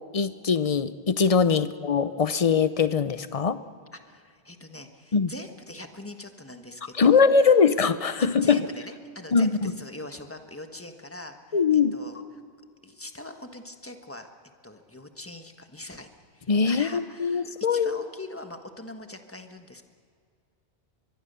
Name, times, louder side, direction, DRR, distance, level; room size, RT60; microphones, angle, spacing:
voice 1, 0.1-3.6 5.1-5.3 7.0-8.6 9.3-9.7 11.5-11.9 16.5-18.0, left 5 dB, 40° left, 13 dB, 0.7 m, -22 dB
voice 2, 3.9-7.6 8.2-12.2 12.8-14.3 14.6-16.1 16.3-19.8, left 1 dB, 15° left, 5 dB, 1.4 m, -42 dB
23.0 x 22.5 x 6.9 m, 2.1 s
omnidirectional pair, 1.1 m